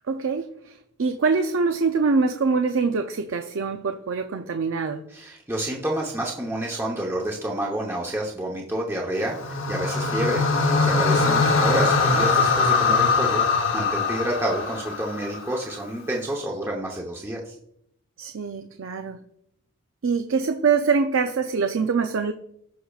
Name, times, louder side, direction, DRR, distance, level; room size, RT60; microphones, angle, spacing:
voice 1, 0.1-5.0 18.2-19.2 20.0-22.3, right 4 dB, 60° right, 6 dB, 0.5 m, -24 dB
voice 2, 5.1-9.4 9.7-17.5, right 1 dB, 10° right, -2 dB, 0.9 m, -29 dB
sound 1, 9.3-15.6, left 4 dB, 55° left, 0.9 m, -22 dB
15.5 x 5.7 x 2.4 m, 0.74 s
head